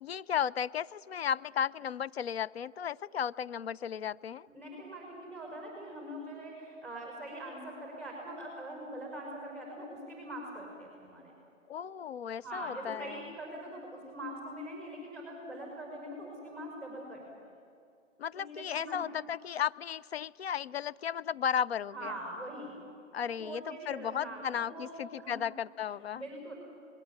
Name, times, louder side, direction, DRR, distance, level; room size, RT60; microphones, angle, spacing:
voice 1, 0.0-4.5 11.7-13.2 18.2-22.1 23.1-26.2, left 8 dB, 55° left, 17 dB, 0.4 m, -34 dB
voice 2, 4.5-11.3 12.4-17.2 18.3-19.1 21.9-22.8 23.2-25.4 26.1-26.5, right 1 dB, 5° left, -2 dB, 5.4 m, -43 dB
21.0 x 19.0 x 8.7 m, 2.4 s
figure-of-eight pair, 140°, 39 cm